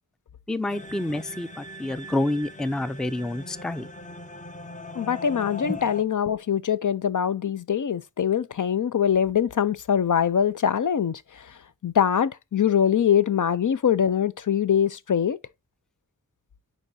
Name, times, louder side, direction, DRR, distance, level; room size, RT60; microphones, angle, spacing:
voice 1, 0.5-3.9 5.7-5.8, left 1 dB, ahead, 0.4 m, -28 dB
sound 1, 0.7-6.0, left 2 dB, 20° left, 0.7 m, -40 dB
voice 2, 4.9-15.4, left 8 dB, 65° left, 0.5 m, -23 dB
9.9 x 4.1 x 2.6 m
wide cardioid pair, 60°, 34 cm